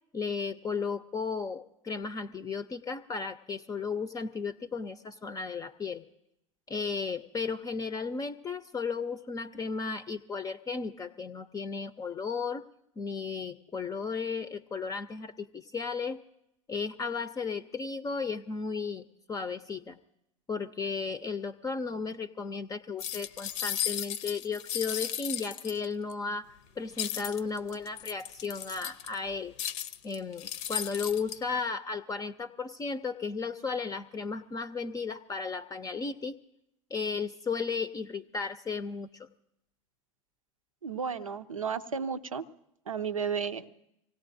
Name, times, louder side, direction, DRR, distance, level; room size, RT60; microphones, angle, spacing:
voice 1, 0.1-6.0 6.7-12.6 13.0-16.2 16.7-20.0 20.5-29.5 30.0-36.4 36.9-39.3, left 5 dB, 20° left, 11 dB, 0.5 m, -34 dB
sound 1, 23.0-26.1 27.0-29.2 29.6-31.4, left 10 dB, 60° left, 0.7 m, -35 dB
voice 2, 40.8-42.4 42.9-43.6, right 6 dB, 90° right, 11 dB, 0.6 m, -33 dB
25.5 x 17.5 x 2.6 m, 0.81 s
figure-of-eight pair, 80°, 17 cm